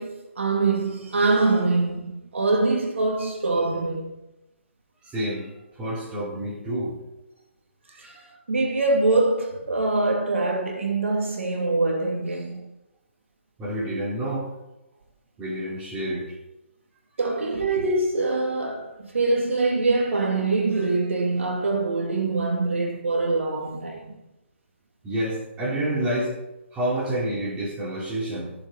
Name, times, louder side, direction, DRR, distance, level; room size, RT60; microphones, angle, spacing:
voice 1, 0.0-4.2 8.0-8.1 8.5-12.6 17.2-24.2, right 3 dB, 80° right, 2.4 m, -24 dB
voice 2, 5.0-7.0 7.9-8.4 13.6-14.5 15.4-16.4 25.0-26.3 26.7-28.5, right 1 dB, 15° right, 4.3 m, -29 dB
14.5 x 7.3 x 5.6 m
hypercardioid pair, 150°, 7 cm